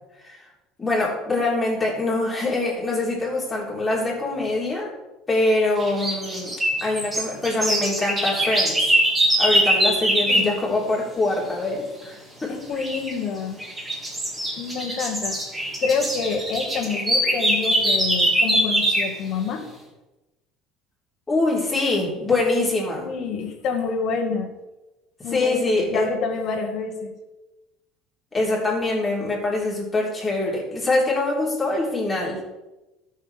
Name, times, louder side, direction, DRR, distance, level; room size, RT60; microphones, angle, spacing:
voice 1, 0.8-4.9 5.3-6.5 6.8-8.8 9.4-12.6 21.3-23.1 25.3-26.1 28.3-32.4, left 2 dB, 15° left, -4 dB, 3.6 m, -24 dB
sound 1, 5.8-10.5 12.8-13.1 13.6-19.2, right 1 dB, 15° right, 3.4 m, -22 dB
voice 2, 12.5-13.6 14.6-15.4 15.8-19.6 22.9-24.5 25.2-27.1, left 5 dB, 55° left, 3 dB, 1.8 m, -27 dB
13.5 x 6.6 x 3.5 m, 1.0 s
supercardioid pair, 115°, 0 cm